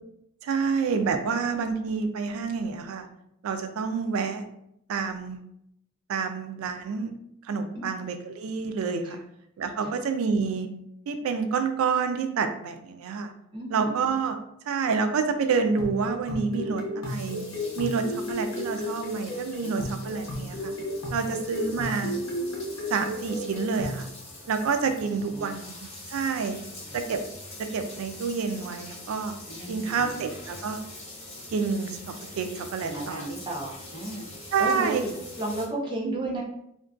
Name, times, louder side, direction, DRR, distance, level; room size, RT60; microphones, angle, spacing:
voice 1, 0.4-3.1 3.4-4.4 4.9-5.4 6.1-7.1 7.4-9.2 9.6-10.7 11.1-13.3 13.7-14.4 14.7-17.5 17.8-20.7 21.1-22.1 22.9-24.1 24.5-26.6 26.9-27.2 27.7-29.3 29.7-30.8 31.5-33.2 34.5-35.0 36.0-36.4, right 5 dB, 85° right, 7 dB, 0.3 m, -28 dB
voice 2, 13.5-14.0 19.6-19.9 21.2-21.3 25.3-25.5 29.5-30.3 32.8-36.4, right 1 dB, 25° right, -3 dB, 0.5 m, -34 dB
sound 1, 15.5-24.0, left 1 dB, 80° left, 0.6 m, -34 dB
sound 2, 17.0-35.7, left 1 dB, 30° left, 0.9 m, -44 dB
2.5 x 2.2 x 2.3 m, 0.75 s
head